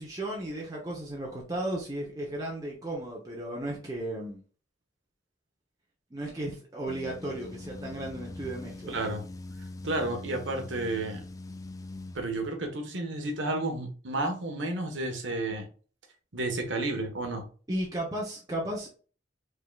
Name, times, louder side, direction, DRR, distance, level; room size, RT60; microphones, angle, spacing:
voice 1, 0.0-4.4 6.1-9.0 17.7-19.0, right 1 dB, 20° right, -3 dB, 0.9 m, -35 dB
sound 1, 6.9-12.2, left 2 dB, 20° left, 0.3 m, -42 dB
voice 2, 8.9-9.2 9.8-11.2 12.1-15.7 16.3-17.4, right 2 dB, 80° right, 4 dB, 1.3 m, -31 dB
4.9 x 3.8 x 2.4 m, 0.38 s
head